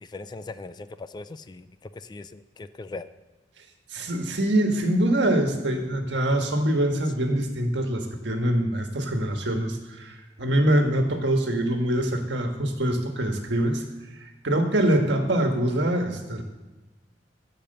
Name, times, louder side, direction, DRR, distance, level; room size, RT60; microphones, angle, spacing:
voice 1, 0.0-3.1, left 3 dB, 25° left, 13 dB, 0.3 m, -40 dB
voice 2, 3.9-13.8 14.2-16.4, right 1 dB, 75° right, 4 dB, 1.5 m, -24 dB
14.0 x 5.1 x 6.6 m, 1.2 s
head